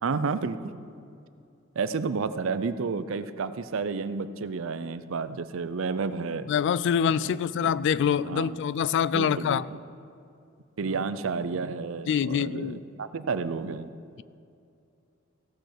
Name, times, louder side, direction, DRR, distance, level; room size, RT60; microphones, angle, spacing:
voice 1, 0.0-0.7 1.8-6.5 7.2-7.4 7.6-7.7 8.2-8.6 9.1-9.6 10.8-13.9, right 4 dB, 70° right, 13 dB, 0.5 m, -31 dB
voice 2, 6.5-9.7 12.1-12.8, left 7 dB, 60° left, 18 dB, 0.3 m, -25 dB
15.5 x 6.3 x 6.6 m, 2.5 s
head